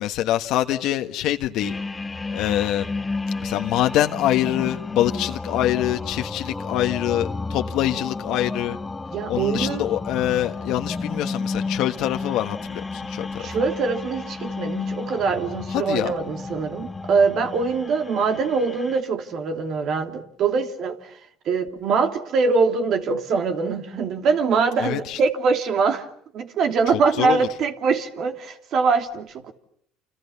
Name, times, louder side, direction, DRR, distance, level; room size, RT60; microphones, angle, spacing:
voice 1, 0.0-1.7 2.3-2.9 3.4-8.8 9.3-13.5 15.7-16.1 24.8-25.2 26.9-27.5, left 13 dB, 70° left, 1.4 m, -25 dB
sound 1, 1.6-19.0, left 3 dB, 20° left, 1.4 m, -32 dB
voice 2, 9.1-9.9 13.4-21.0 21.5-26.0 26.3-29.5, right 5 dB, 60° right, 3.1 m, -23 dB
29.5 x 27.5 x 7.0 m
supercardioid pair, 90°, 0 cm